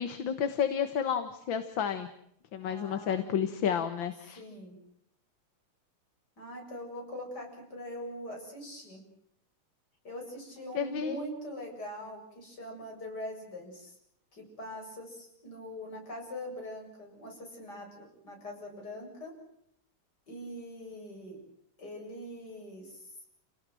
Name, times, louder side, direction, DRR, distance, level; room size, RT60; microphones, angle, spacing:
voice 1, 0.0-2.1 2.5-4.4 10.7-11.2, left 8 dB, 60° left, 9 dB, 2.1 m, -31 dB
voice 2, 2.6-3.3 4.4-4.7 6.4-9.0 10.0-13.9 14.3-19.3 20.3-21.4 21.8-23.0, left 1 dB, 45° left, 1 dB, 8.4 m, -42 dB
29.5 x 18.5 x 7.8 m, 0.74 s
omnidirectional pair, 2.4 m